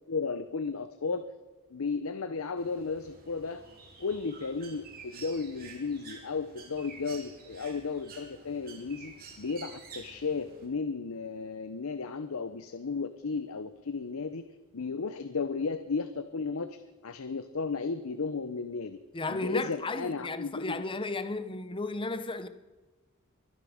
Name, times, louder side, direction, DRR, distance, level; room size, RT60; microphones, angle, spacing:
voice 1, 0.1-1.3 1.7-3.6 4.0-14.4 14.7-19.0 19.3-20.8, left 4 dB, 75° left, 0.7 m, -34 dB
Bird, 2.6-10.7, right 4 dB, 45° right, 3.0 m, -50 dB
voice 2, 19.1-22.5, left 2 dB, 25° left, 0.8 m, -34 dB
23.5 x 11.5 x 5.0 m
head